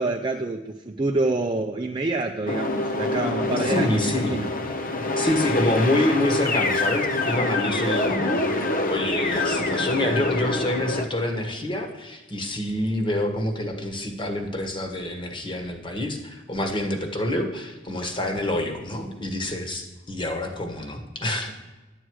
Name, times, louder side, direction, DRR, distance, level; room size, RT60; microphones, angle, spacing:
voice 1, 0.0-4.5, right 2 dB, 25° right, 3 dB, 0.5 m, -27 dB
sound 1, 2.5-11.1, left 2 dB, 45° left, 0.8 m, -26 dB
voice 2, 3.7-4.4 5.2-8.4 8.9-21.5, left 1 dB, 25° left, 3 dB, 1.5 m, -27 dB
11.5 x 9.0 x 4.7 m, 1.1 s
head